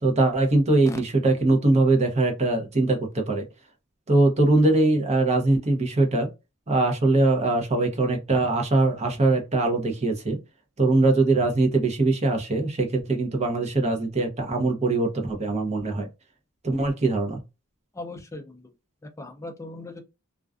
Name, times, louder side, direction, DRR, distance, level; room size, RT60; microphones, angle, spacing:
voice 1, 0.0-3.4 4.1-6.3 6.7-10.4 10.8-16.1 16.6-17.4, right 2 dB, 30° right, 0.7 m, -22 dB
voice 2, 17.9-18.7 19.0-20.0, left 2 dB, 15° left, 0.4 m, -38 dB
2.4 x 2.2 x 2.3 m
head